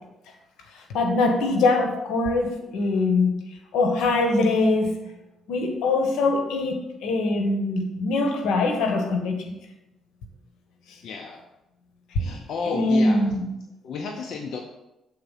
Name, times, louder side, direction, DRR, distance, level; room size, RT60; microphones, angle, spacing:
voice 1, 0.9-3.3 3.7-5.0 5.5-9.4 12.1-12.3 12.6-13.4, left 2 dB, 85° left, 4 dB, 1.2 m, -22 dB
voice 2, 11.0-11.4 12.2-13.2 13.8-14.6, left 5 dB, 65° left, 2 dB, 0.7 m, -32 dB
7.7 x 4.1 x 5.6 m, 0.94 s
cardioid pair, 90°, 0 cm